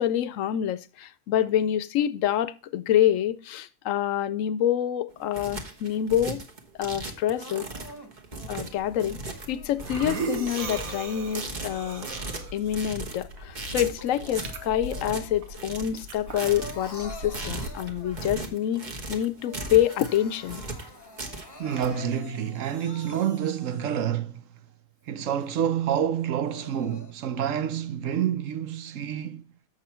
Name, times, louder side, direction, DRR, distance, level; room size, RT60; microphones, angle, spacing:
voice 1, 0.0-6.4 6.8-7.7 8.5-9.2 9.5-12.1 12.5-18.8 19.1-20.6, left 11 dB, 75° left, 1.0 m, -26 dB
sound 1, 5.1-21.9, right 2 dB, 35° right, 1.3 m, -38 dB
Crying sobbing, 7.3-9.8 10.4-12.2 12.6-15.5 15.9-18.5 19.0-19.1 19.3-24.2 24.7-24.8 25.4-25.5 26.2-27.1, left 2 dB, 20° left, 0.9 m, -47 dB
sound 2, 8.8-18.3, right 3 dB, 90° right, 1.6 m, -38 dB
voice 2, 21.6-24.4 25.1-29.4, right 9 dB, 70° right, 1.0 m, -28 dB
7.5 x 6.4 x 4.3 m
omnidirectional pair, 1.4 m